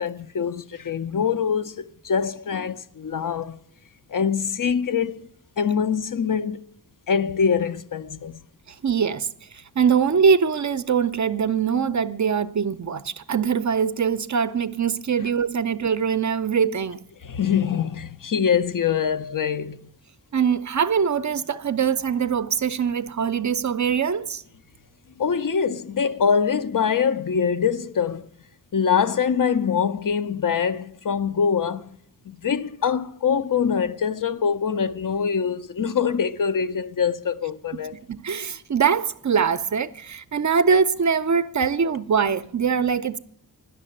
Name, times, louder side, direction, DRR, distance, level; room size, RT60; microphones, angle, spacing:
voice 1, 0.0-3.6 4.1-5.3 5.6-6.6 7.1-8.4 15.2-15.3 17.2-19.8 25.2-28.3 28.7-32.0 32.3-38.0, left 6 dB, 55° left, 0.5 m, -24 dB
voice 2, 8.7-17.0 20.3-24.4 38.1-43.2, right 6 dB, 50° right, 0.5 m, -23 dB
9.9 x 6.6 x 8.6 m
wide cardioid pair, 80°, 39 cm